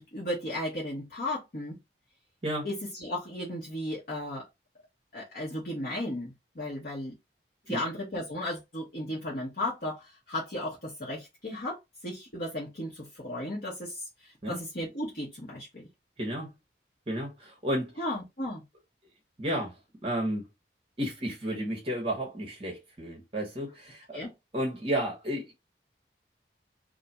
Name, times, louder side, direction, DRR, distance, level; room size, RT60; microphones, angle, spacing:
voice 1, 0.0-1.8 2.6-4.5 5.1-7.1 7.7-15.9 18.0-18.6 24.1-24.3, left 1 dB, 55° left, 1.0 m, -35 dB
voice 2, 16.2-16.5 17.1-17.9 19.4-19.7 20.0-20.4 21.0-24.2 24.5-25.5, equal, 35° right, 0.8 m, -32 dB
2.5 x 2.3 x 4.0 m
head